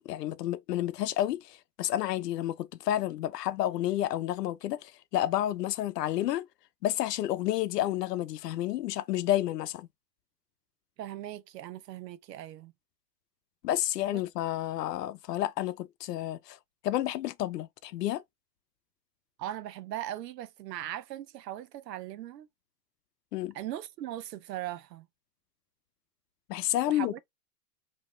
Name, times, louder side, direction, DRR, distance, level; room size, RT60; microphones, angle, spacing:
voice 1, 0.0-6.5 6.8-9.9 13.6-16.6 16.8-18.2 23.3-23.5 26.5-27.2, left 13 dB, 75° left, 0.7 m, -30 dB
voice 2, 11.0-12.7 14.1-14.2 19.4-22.5 23.5-25.1 26.9-27.2, right 12 dB, 85° right, 0.8 m, -39 dB
5.0 x 3.0 x 3.1 m
supercardioid pair, 160°, 48 cm